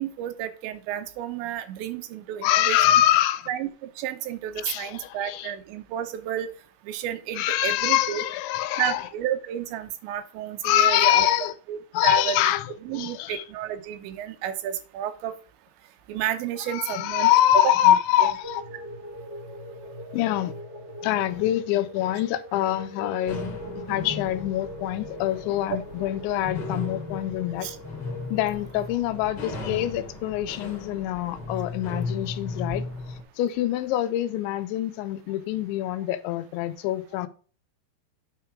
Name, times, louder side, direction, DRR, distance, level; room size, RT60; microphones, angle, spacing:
voice 1, 0.0-2.8 3.5-6.5 6.8-8.2 8.8-11.3 11.7-12.5 12.8-15.3 16.1-17.3 17.9-18.0 27.6-27.8 28.8-28.9, right 10 dB, 80° right, 3.1 m, -31 dB
voice 2, 2.4-3.5 4.6-5.5 7.3-9.1 10.6-11.5 11.9-13.4 16.7-18.6 20.1-20.5 21.0-23.5 23.9-27.7 28.3-32.9 33.4-37.3, left 13 dB, 85° left, 3.0 m, -24 dB
sound 1, 18.4-28.5, equal, 10° right, 1.3 m, -41 dB
sound 2, 23.3-33.2, left 3 dB, 40° left, 2.9 m, -36 dB
9.0 x 4.5 x 4.9 m
omnidirectional pair, 5.2 m